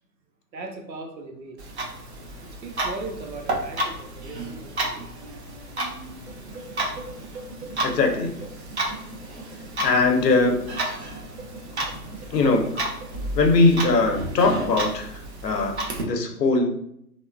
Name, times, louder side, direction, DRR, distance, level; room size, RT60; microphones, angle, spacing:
voice 1, 0.5-2.0 2.6-5.1, right 3 dB, 90° right, 3 dB, 0.6 m, -38 dB
Clock, 1.6-16.0, right 1 dB, 45° right, 0.5 m, -32 dB
sound 1, 6.3-13.6, right 2 dB, 60° right, 0.9 m, -42 dB
voice 2, 7.8-8.3 9.8-10.6 12.3-12.7 13.4-16.7, left 3 dB, 75° left, 4 dB, 0.7 m, -21 dB
2.9 x 2.1 x 2.3 m, 0.73 s
figure-of-eight pair, 130°, 50 cm